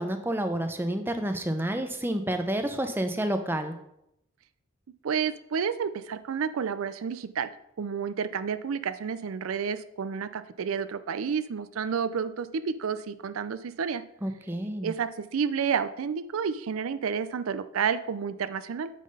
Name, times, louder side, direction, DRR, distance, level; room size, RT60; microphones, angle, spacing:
voice 1, 0.0-3.8 14.2-14.9, right 1 dB, 10° right, 7 dB, 0.5 m, -29 dB
voice 2, 5.0-7.5 7.8-14.0 14.8-18.9, right 6 dB, 85° right, 13 dB, 0.4 m, -30 dB
8.3 x 3.9 x 5.3 m, 0.79 s
head